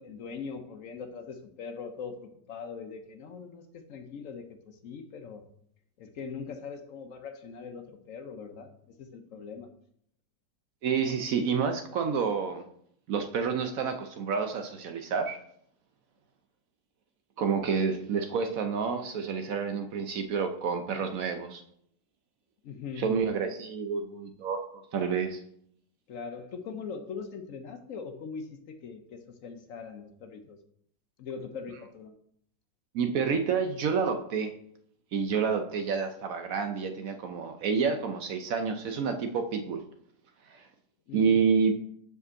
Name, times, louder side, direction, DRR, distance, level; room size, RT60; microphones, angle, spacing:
voice 1, 0.0-5.5 6.0-9.7 22.6-23.2 26.1-30.6 31.2-32.2 41.1-41.4, left 5 dB, 65° left, 0.9 m, -41 dB
voice 2, 10.8-12.6 13.1-15.4 17.4-21.6 23.0-25.4 32.9-34.5 35.1-39.8 40.6-40.7 41.1-41.7, right 6 dB, 65° right, 1.0 m, -29 dB
5.3 x 4.9 x 6.3 m
omnidirectional pair, 1.8 m